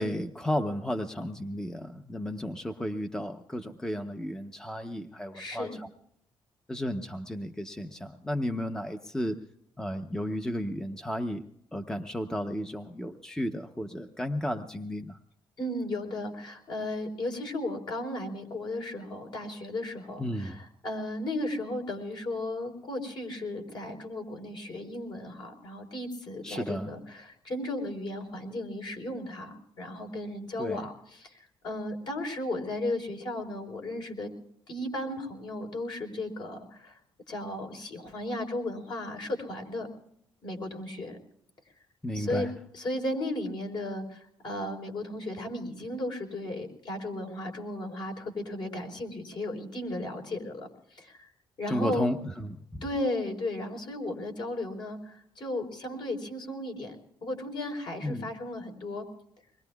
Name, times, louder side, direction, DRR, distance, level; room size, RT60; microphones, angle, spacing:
voice 1, 0.0-5.9 6.7-9.4 9.8-11.4 11.7-15.2 20.2-20.6 26.4-27.0 30.6-30.8 42.0-42.5 51.7-52.8 58.0-58.3, equal, 5° left, 7 dB, 0.8 m, -33 dB
voice 2, 5.3-5.8 15.6-31.4 31.6-34.3 34.7-37.0 37.3-39.9 40.4-41.2 42.1-42.5 42.7-51.3 51.6-52.1 52.8-57.0 57.2-59.0, left 1 dB, 55° left, 2 dB, 4.0 m, -35 dB
25.0 x 21.0 x 2.3 m, 0.72 s
cardioid pair, 120°, 10 cm